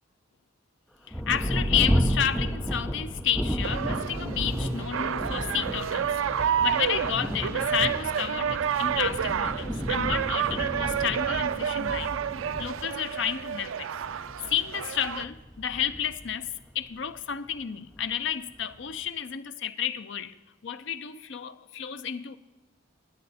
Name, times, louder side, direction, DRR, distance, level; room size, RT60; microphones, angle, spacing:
voice 1, 1.1-12.1 12.6-13.9 14.5-20.4 20.6-22.4, left 9 dB, 65° left, 0.6 m, -31 dB
Thunder, 1.1-17.2 17.9-18.0 18.6-19.0, equal, 5° left, 0.8 m, -32 dB
sound 1, 3.6-15.2, right 8 dB, 80° right, 0.4 m, -30 dB
20.5 x 7.6 x 4.2 m
head